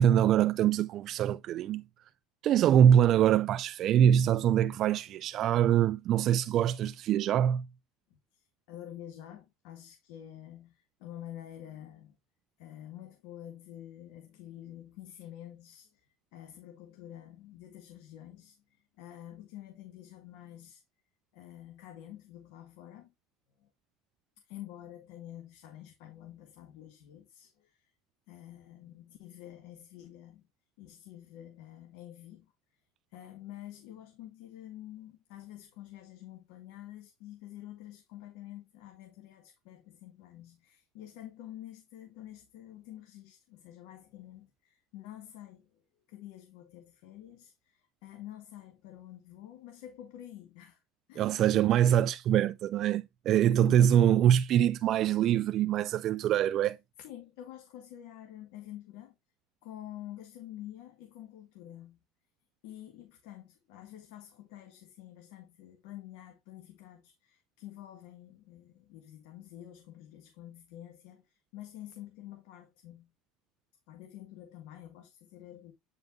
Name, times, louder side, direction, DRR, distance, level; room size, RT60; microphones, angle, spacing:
voice 1, 0.0-1.8 2.4-7.7 51.2-56.8, right 10 dB, 40° right, 0.3 m, -24 dB
voice 2, 8.1-12.2 12.6-20.8 21.3-23.1 23.6-23.7 24.4-27.9 28.3-30.5 30.8-32.5 33.1-45.8 46.1-50.8 51.1-51.8 53.5-54.1 57.0-59.1 59.6-62.0 62.6-73.1 73.9-75.7, left 12 dB, 75° left, 1.8 m, -48 dB
9.1 x 5.3 x 2.6 m
cardioid pair, 155°, 0 cm